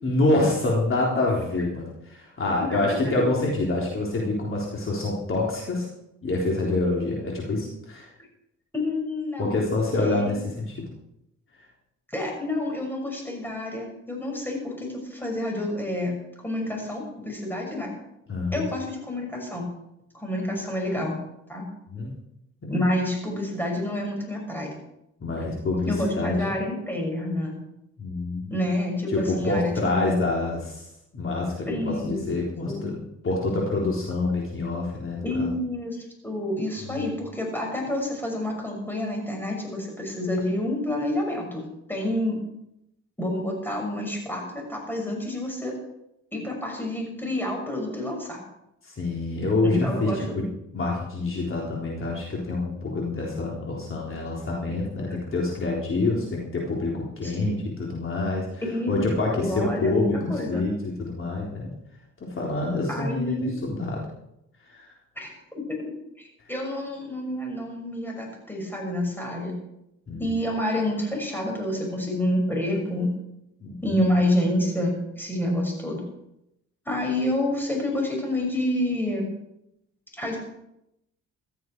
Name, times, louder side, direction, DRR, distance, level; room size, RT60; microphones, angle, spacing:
voice 1, 0.0-5.9 6.2-8.1 9.4-10.7 18.3-18.7 21.9-22.1 22.6-22.8 25.2-26.4 28.0-28.5 29.1-30.9 31.1-35.5 36.9-37.0 48.8-50.5 50.7-58.6 58.9-61.7 62.2-64.1 64.6-64.9 70.1-70.3 73.6-74.0, left 2 dB, 45° left, -3 dB, 3.8 m, -27 dB
voice 2, 2.6-3.2 8.7-9.6 10.0-10.3 12.1-16.2 16.4-17.9 18.5-19.7 20.1-21.2 21.5-21.7 22.7-24.7 25.9-27.6 28.5-30.2 31.7-32.2 32.7-32.8 35.2-36.0 36.2-42.4 43.2-45.7 46.3-48.4 49.6-50.4 57.2-57.3 58.6-59.0 59.3-60.6 62.9-63.5 65.2-65.3 65.7-69.5 70.2-73.1 73.8-76.0 76.8-79.3 80.1-80.4, left 1 dB, 5° left, 0 dB, 6.3 m, -28 dB
16.0 x 13.0 x 4.7 m, 0.84 s
cardioid pair, 90°, 30 cm